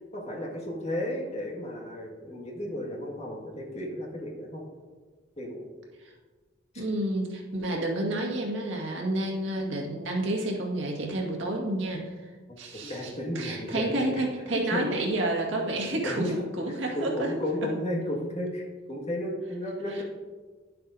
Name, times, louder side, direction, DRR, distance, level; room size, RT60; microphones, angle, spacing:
voice 1, 0.1-4.7 5.4-5.6 6.7-6.8 12.8-14.8 16.0-16.3 16.9-20.0, left 1 dB, 35° left, -2 dB, 1.7 m, -33 dB
voice 2, 6.7-12.2 12.6-17.3 19.9-20.0, right 1 dB, 85° right, -1 dB, 1.8 m, -30 dB
11.0 x 7.7 x 2.7 m, 1.4 s
head